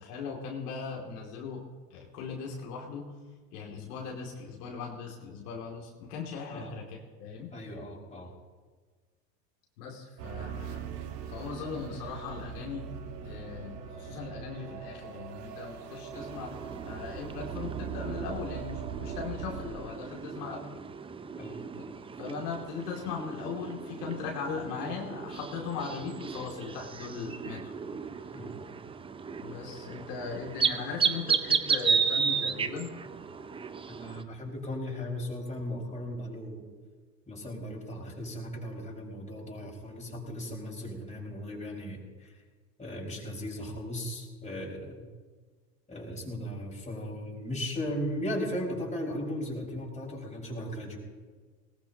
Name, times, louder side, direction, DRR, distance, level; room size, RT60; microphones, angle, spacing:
voice 1, 0.0-1.6 1.9-3.1 3.5-7.5 9.8-10.8 11.3-12.9 13.2-16.6 16.9-20.7 21.7-21.8 22.2-27.7 29.4-32.9, left 5 dB, 65° left, -1 dB, 2.7 m, -39 dB
voice 2, 7.5-8.3 21.4-21.6 28.3-28.6 33.9-36.7 37.3-42.4 42.8-45.1 45.9-51.0, equal, 15° left, -3 dB, 5.5 m, -37 dB
sound 1, 10.2-19.7, right 8 dB, 70° right, 1.7 m, -41 dB
sound 2, 16.1-34.2, right 6 dB, 10° right, 0.5 m, -34 dB
19.5 x 19.5 x 2.9 m, 1.5 s
hypercardioid pair, 95°, 49 cm